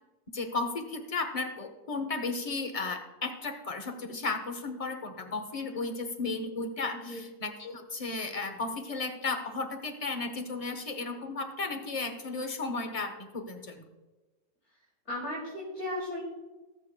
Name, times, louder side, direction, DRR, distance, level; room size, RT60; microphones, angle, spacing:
voice 1, 0.3-13.8, left 3 dB, 30° left, 6 dB, 0.7 m, -34 dB
voice 2, 15.1-16.2, left 1 dB, 45° left, -7 dB, 3.1 m, -35 dB
18.5 x 7.5 x 2.2 m, 1.2 s
omnidirectional pair, 1.6 m